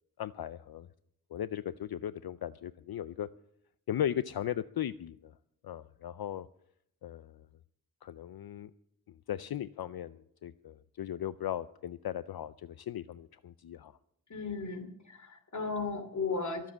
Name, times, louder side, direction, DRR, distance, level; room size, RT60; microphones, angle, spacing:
voice 1, 0.2-0.9 1.3-3.3 3.9-5.3 5.6-6.5 7.0-7.5 8.0-8.7 9.3-14.0, left 10 dB, 60° left, 14 dB, 0.5 m, -37 dB
voice 2, 14.3-16.7, left 4 dB, 45° left, 7 dB, 2.7 m, -35 dB
22.5 x 7.6 x 7.3 m, 0.73 s
wide cardioid pair, 145°, 41 cm